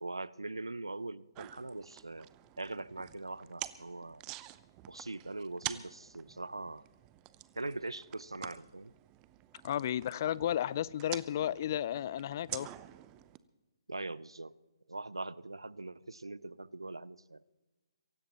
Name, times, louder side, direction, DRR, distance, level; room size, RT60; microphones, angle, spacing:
voice 1, 0.0-2.3 2.6-4.2 4.9-6.8 7.6-8.9 13.9-14.6 14.9-17.4, right 2 dB, 90° right, 0.5 m, -42 dB
sound 1, 1.3-13.4, right 16 dB, 25° right, 0.6 m, -48 dB
voice 2, 9.6-12.7, left 11 dB, 45° left, 0.5 m, -33 dB
23.0 x 17.0 x 3.0 m
figure-of-eight pair, 135°, 2 cm